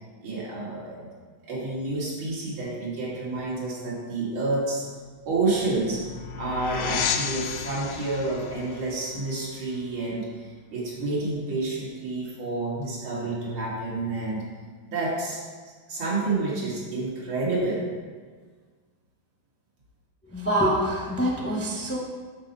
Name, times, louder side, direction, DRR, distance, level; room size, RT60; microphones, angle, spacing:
voice 1, 0.2-1.1 1.4-4.8 5.3-6.0 6.4-10.3 10.7-14.4 14.9-15.4 15.9-17.9, right 2 dB, 85° right, -6 dB, 2.8 m, -29 dB
sound 1, 5.0-10.4, left 7 dB, 80° left, 1.4 m, -34 dB
voice 2, 20.3-22.0, equal, 10° left, -2 dB, 0.6 m, -25 dB
11.5 x 4.3 x 4.1 m, 1.5 s
omnidirectional pair, 2.3 m